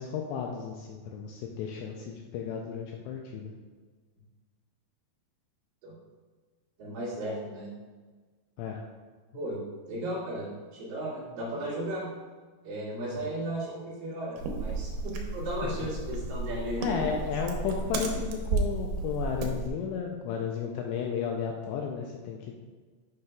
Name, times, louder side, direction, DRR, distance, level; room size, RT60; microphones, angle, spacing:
voice 1, 0.0-3.5 8.6-8.8 13.1-13.4 15.6-15.7 16.8-22.6, left 7 dB, 85° left, 1 dB, 2.4 m, -33 dB
voice 2, 6.8-7.7 9.3-9.6 9.9-12.1 12.6-17.0, right 1 dB, 55° right, -8 dB, 3.5 m, -35 dB
sound 1, 14.4-19.7, right 3 dB, 85° right, 3.2 m, -33 dB
9.4 x 5.8 x 2.3 m, 1.4 s
omnidirectional pair, 5.4 m